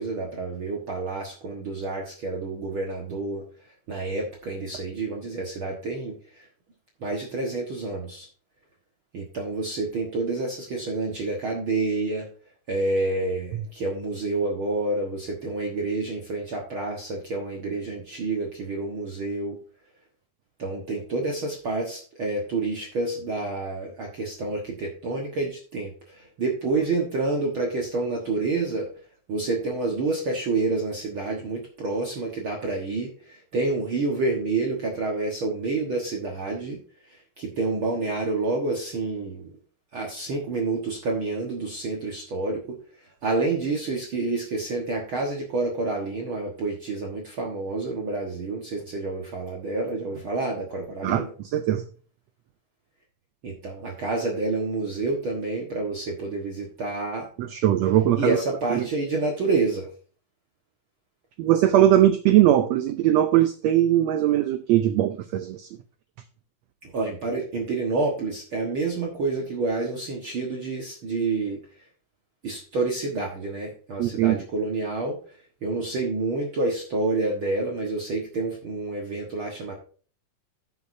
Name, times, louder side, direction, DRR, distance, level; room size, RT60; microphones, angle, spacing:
voice 1, 0.0-3.4 3.9-6.4 7.0-8.3 9.1-12.3 12.7-19.6 20.6-28.9 29.3-36.8 37.4-39.4 39.9-42.8 43.2-51.3 53.4-57.3 58.2-59.9 66.8-71.6 72.4-75.2 75.6-79.8, right 3 dB, 50° right, 1.8 m, -28 dB
voice 2, 51.5-51.8 57.4-58.4 58.7-58.9 61.4-65.7 74.0-74.5, right 12 dB, 80° right, 1.5 m, -20 dB
15.5 x 6.7 x 2.7 m
omnidirectional pair, 3.7 m